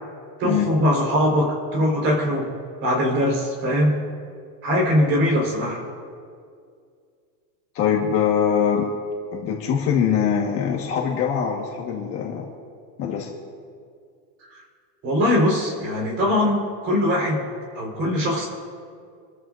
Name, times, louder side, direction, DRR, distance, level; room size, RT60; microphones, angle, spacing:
voice 1, 0.4-2.5 2.8-4.0 4.6-5.8 15.0-17.4 17.7-18.5, left 1 dB, 25° right, -1 dB, 4.2 m, -21 dB
voice 2, 7.7-8.9 9.3-12.5 13.0-13.3, left 8 dB, 30° left, -1 dB, 1.4 m, -23 dB
29.0 x 14.0 x 2.6 m, 2.2 s
supercardioid pair, 175°, 48 cm